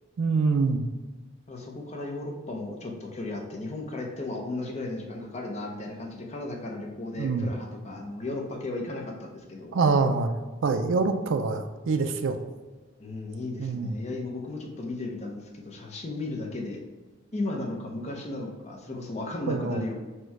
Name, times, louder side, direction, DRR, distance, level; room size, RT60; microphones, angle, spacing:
voice 1, 0.2-0.8 7.2-7.5 9.7-12.4 13.6-13.9 19.5-19.8, right 4 dB, 60° right, 8 dB, 0.4 m, -25 dB
voice 2, 1.5-9.8 13.0-16.8 17.3-19.9, left 2 dB, 30° left, 1 dB, 0.6 m, -35 dB
4.4 x 2.2 x 4.6 m, 1.3 s
head